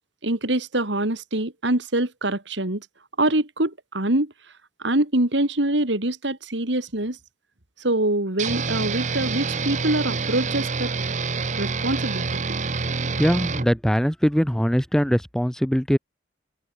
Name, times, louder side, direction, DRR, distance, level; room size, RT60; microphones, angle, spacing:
voice 1, 0.2-2.8 3.2-4.3 4.8-7.2 7.8-10.9 11.5-12.4, right 1 dB, 70° right, 2.8 m, -24 dB
sound 1, 8.4-13.7, right 4 dB, 40° right, 0.9 m, -27 dB
voice 2, 13.0-16.0, equal, 5° left, 0.7 m, -22 dB
head